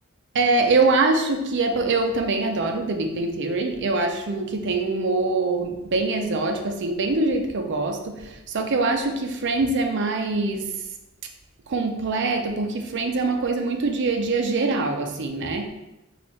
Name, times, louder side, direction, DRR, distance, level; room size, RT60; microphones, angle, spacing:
voice 1, 0.3-10.7 11.7-15.7, right 3 dB, 60° right, 5 dB, 0.6 m, -24 dB
6.0 x 2.5 x 3.1 m, 0.96 s
head